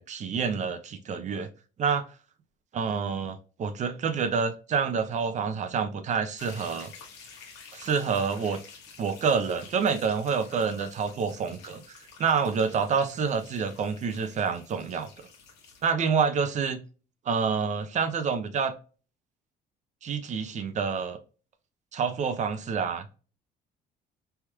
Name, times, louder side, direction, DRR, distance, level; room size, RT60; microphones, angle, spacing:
voice 1, 0.0-1.5 1.8-2.0 2.7-6.9 7.7-8.6 9.0-15.3 15.8-16.8 17.3-18.7 20.0-21.2 21.9-23.1, right 6 dB, 45° right, 0.6 m, -28 dB
sound 1, 6.4-15.9, left 5 dB, 85° left, 1.1 m, -50 dB
3.4 x 3.0 x 2.3 m
cardioid pair, 110°, 17 cm